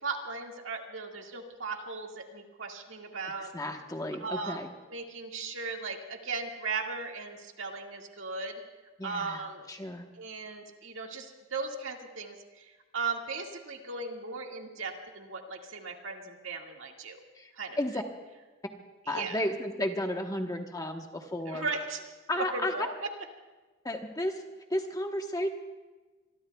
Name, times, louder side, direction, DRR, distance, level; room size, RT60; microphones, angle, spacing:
voice 1, 0.0-3.5 4.2-4.6 4.9-8.6 9.0-9.7 10.1-17.2 17.6-17.8 19.1-19.4 21.5-22.0 22.3-22.9, right 4 dB, 65° right, 1 dB, 2.0 m, -37 dB
voice 2, 3.5-4.7 9.0-9.4 9.7-10.0 17.4-17.5 17.8-17.9 19.1-21.6 22.3-22.9 23.8-24.4 24.7-25.5, left 1 dB, 15° left, 3 dB, 1.1 m, -33 dB
26.5 x 22.5 x 2.3 m, 1.2 s
head